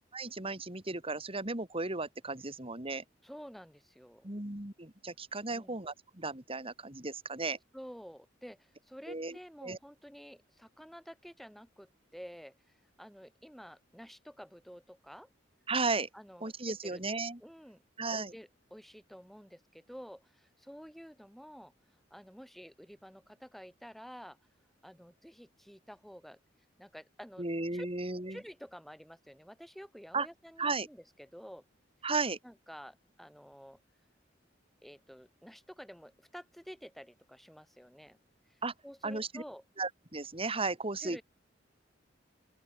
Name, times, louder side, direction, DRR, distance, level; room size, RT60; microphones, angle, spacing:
voice 1, 0.1-3.0 4.2-7.6 9.1-9.8 15.7-16.1 16.4-17.4 18.0-18.3 27.4-28.4 30.1-30.3 30.6-30.9 32.0-32.4 38.6-38.7 39.0-39.4 39.8-41.2, right 3 dB, 30° right, 3.3 m, -35 dB
voice 2, 3.2-4.3 5.5-5.8 7.7-15.3 16.1-17.0 17.4-17.8 18.1-21.7 22.1-24.4 24.8-26.4 26.8-27.5 27.7-27.9 28.3-31.6 32.4-33.8 34.8-38.2 38.5-39.6 41.0-41.2, equal, ahead, 6.2 m, -50 dB
open air
head